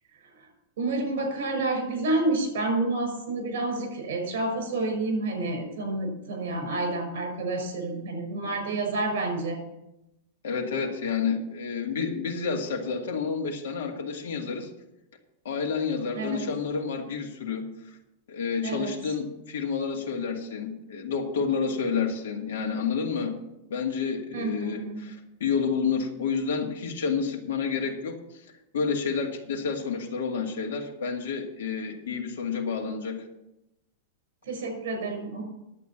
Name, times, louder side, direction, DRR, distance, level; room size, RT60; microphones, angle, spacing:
voice 1, 0.8-9.6 16.1-16.4 18.6-18.9 24.3-25.0 34.4-35.4, right 2 dB, 60° right, 4 dB, 5.9 m, -29 dB
voice 2, 10.4-14.7 15.4-18.0 18.3-23.4 23.7-28.5 28.7-33.3, left 5 dB, 85° left, 1 dB, 2.0 m, -29 dB
10.5 x 8.5 x 7.3 m, 0.89 s
supercardioid pair, 175°, 0 cm